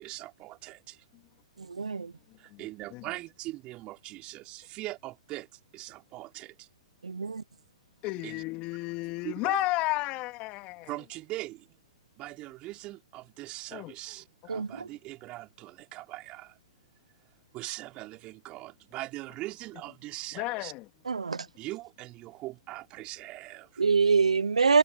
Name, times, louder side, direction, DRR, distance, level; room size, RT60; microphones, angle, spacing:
voice 1, 0.0-1.0 2.4-6.7 8.2-8.4 8.8-8.9 9.2-9.5 10.9-11.7 12.2-16.6 17.5-20.7 21.6-23.8, right 18 dB, 30° right, 3.8 m, -41 dB
voice 2, 1.8-2.1 7.0-7.4 14.5-14.7 21.1-21.4 23.8-24.8, right 5 dB, 85° right, 0.8 m, -24 dB
voice 3, 8.0-10.9 13.7-13.9 20.4-20.8, left 22 dB, 35° left, 2.9 m, -32 dB
figure-of-eight pair, 120°, 3 cm